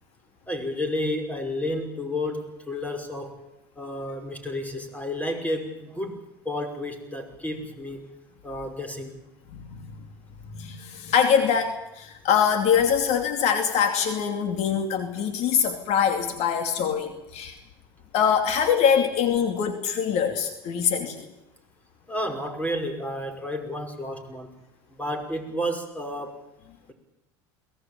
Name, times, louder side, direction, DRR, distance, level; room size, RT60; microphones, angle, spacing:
voice 1, 0.5-3.4 3.8-6.2 6.4-8.1 8.4-9.1 22.1-24.5 24.9-26.4, left 1 dB, 10° left, 6 dB, 5.6 m, -31 dB
voice 2, 10.5-17.5 18.1-21.3, left 7 dB, 60° left, 6 dB, 2.8 m, -23 dB
22.5 x 18.5 x 8.9 m, 0.91 s
hypercardioid pair, 85°, 13 cm